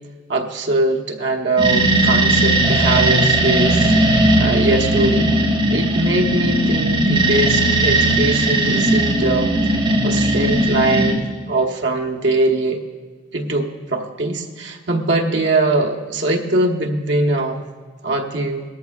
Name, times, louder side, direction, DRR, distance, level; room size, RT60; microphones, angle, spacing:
voice 1, 0.3-3.8 4.2-5.4 5.7-12.8 13.3-17.6 18.0-18.6, right 2 dB, 60° right, 1 dB, 1.1 m, -21 dB
sound 1, 1.6-11.1, right 1 dB, 25° right, 2.2 m, -17 dB
18.5 x 13.5 x 2.4 m, 1.5 s
head